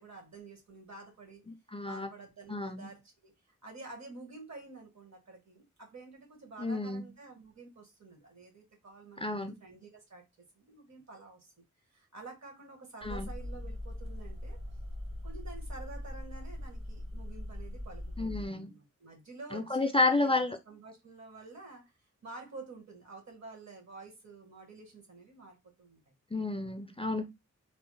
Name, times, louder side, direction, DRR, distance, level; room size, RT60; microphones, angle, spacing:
voice 1, 0.0-1.4 1.8-3.3 3.6-10.2 10.5-14.6 15.2-21.8 22.2-26.0, right 3 dB, 60° right, 1.3 m, -50 dB
voice 2, 1.5-2.1 2.5-2.9 6.6-7.0 9.2-9.6 13.0-13.3 18.2-18.7 19.5-20.6 26.3-27.3, left 2 dB, 20° left, 0.3 m, -31 dB
sound 1, 13.0-18.5, left 1 dB, 45° right, 1.0 m, -41 dB
3.0 x 2.0 x 3.2 m
wide cardioid pair, 75°, 31 cm